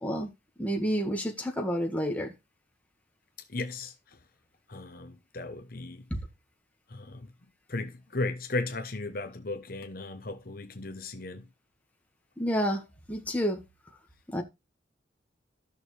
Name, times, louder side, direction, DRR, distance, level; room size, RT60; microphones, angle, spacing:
voice 1, 0.6-2.3 6.1-6.2 12.4-13.6 14.3-14.4, equal, 10° left, 1.8 m, -29 dB
voice 2, 3.5-3.9 4.7-6.0 6.9-7.3 7.7-11.4, left 2 dB, 50° left, 0.9 m, -35 dB
13.5 x 6.3 x 3.4 m
head